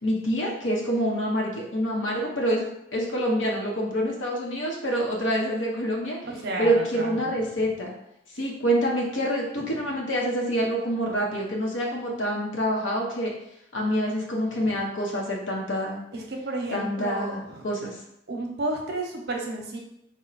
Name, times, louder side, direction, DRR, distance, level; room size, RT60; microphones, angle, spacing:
voice 1, 0.0-2.6 2.9-6.2 6.6-7.9 8.4-13.3 13.7-16.0 16.7-18.0, equal, 75° left, -2 dB, 0.8 m, -26 dB
voice 2, 6.2-7.3 9.7-9.8 14.6-14.8 16.1-17.7 18.3-19.8, right 2 dB, 55° right, 1 dB, 0.7 m, -32 dB
4.2 x 2.1 x 3.9 m, 0.80 s
head